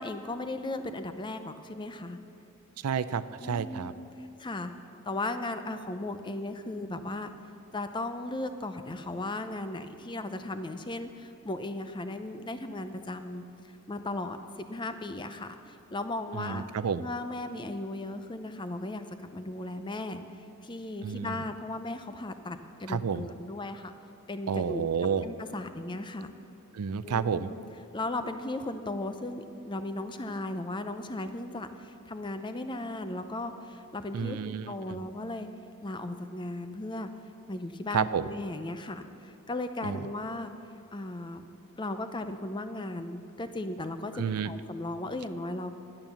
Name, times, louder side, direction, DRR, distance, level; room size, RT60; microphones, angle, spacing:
voice 1, 0.0-2.2 3.4-4.1 4.4-4.7 5.0-7.3 7.7-13.4 13.9-14.4 14.7-16.7 17.0-20.2 20.6-23.9 24.3-24.8 25.2-26.3 27.0-27.6 27.9-35.5 35.8-37.1 37.5-40.5 40.9-41.5 41.8-45.8, left 2 dB, 20° left, 9 dB, 0.6 m, -36 dB
voice 2, 2.8-3.9 16.3-17.1 21.0-21.4 22.9-23.3 24.5-25.3 26.7-27.5 34.1-35.0 37.9-38.3 39.8-40.0 44.1-44.5, right 6 dB, 85° right, 14 dB, 0.5 m, -30 dB
11.5 x 8.9 x 6.9 m, 2.8 s
head